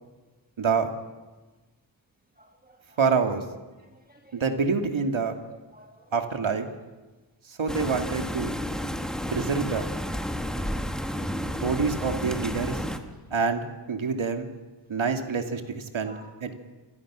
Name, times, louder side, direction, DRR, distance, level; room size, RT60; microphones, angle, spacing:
voice 1, 0.6-0.9 3.0-3.4 4.3-5.4 6.1-6.7 7.6-8.5 9.3-9.9 11.5-12.8 13.3-14.5 14.9-16.1 16.4-16.5, right 5 dB, 85° right, 5 dB, 2.4 m, -26 dB
voice 2, 2.4-3.0 4.1-4.4 5.5-6.0 11.1-11.3 16.0-16.5, right 1 dB, 20° right, 3 dB, 1.8 m, -53 dB
sound 1, 7.7-13.0, equal, ahead, 1.9 m, -31 dB
28.0 x 24.5 x 6.2 m, 1.2 s
wide cardioid pair, 105°, 46 cm